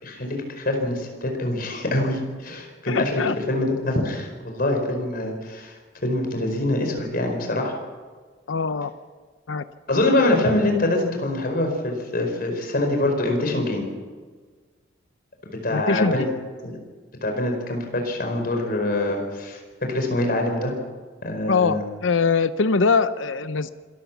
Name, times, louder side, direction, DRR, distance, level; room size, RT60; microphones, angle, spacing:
voice 1, 0.0-3.2 3.5-5.7 6.0-7.7 9.9-13.8 15.5-16.3 16.6-16.7 17.2-20.7 21.2-21.8, left 1 dB, 50° left, 3 dB, 4.7 m, -24 dB
voice 2, 2.9-3.4 8.5-8.9 9.5-9.6 15.7-16.3 21.5-23.7, left 4 dB, 85° left, 12 dB, 0.7 m, -22 dB
26.0 x 13.5 x 7.2 m, 1.5 s
head